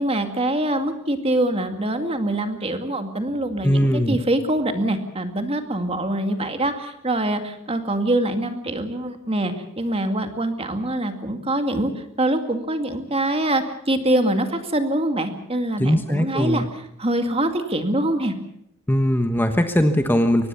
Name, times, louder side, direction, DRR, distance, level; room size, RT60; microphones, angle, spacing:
voice 1, 0.0-18.3, right 1 dB, 30° right, 7 dB, 2.2 m, -24 dB
voice 2, 3.6-4.2 15.8-16.6 18.9-20.5, equal, 10° left, 7 dB, 1.2 m, -20 dB
23.5 x 18.5 x 7.0 m, 0.77 s
head